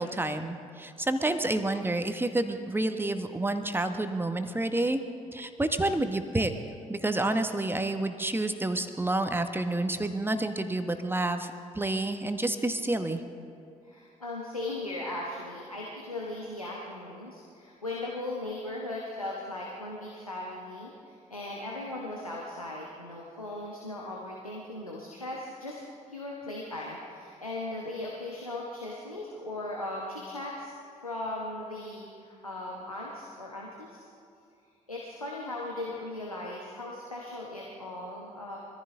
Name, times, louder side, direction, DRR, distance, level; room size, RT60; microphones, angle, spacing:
voice 1, 0.0-5.0 5.3-6.5 6.9-13.2, right 2 dB, 10° right, 8 dB, 1.1 m, -29 dB
voice 2, 13.8-25.8 26.1-30.7 31.0-34.0 34.9-38.6, left 2 dB, 90° left, -3 dB, 1.1 m, -38 dB
23.5 x 14.5 x 3.7 m, 2.4 s
figure-of-eight pair, 45°, 18 cm